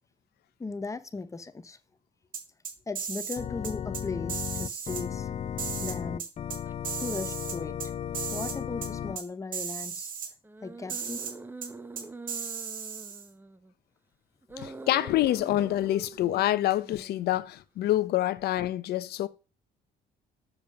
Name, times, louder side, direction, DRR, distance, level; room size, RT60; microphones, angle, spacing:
voice 1, 0.6-1.8 2.9-5.3 5.8-6.3 7.0-7.8 8.3-10.1 10.6-11.2 14.6-14.7, left 3 dB, 20° left, 0.9 m, -37 dB
sound 1, 2.3-3.4 3.6-4.0 4.3-5.0 5.6-6.6 6.8-7.9 8.1-8.6 8.8-8.9 9.2-9.3 9.5-10.3 10.9-11.3 11.6-11.7 12.0-13.3, right 7 dB, 55° right, 2.6 m, -36 dB
Organ, 3.4-9.2, left 9 dB, 40° left, 0.6 m, -35 dB
sound 2, 5.8-6.1 6.6-6.7 10.4-13.7 14.4-17.4, right 2 dB, 10° right, 0.9 m, -45 dB
voice 2, 14.6-19.3, left 14 dB, 70° left, 0.8 m, -27 dB
7.4 x 7.0 x 5.6 m
cardioid pair, 110°, 17 cm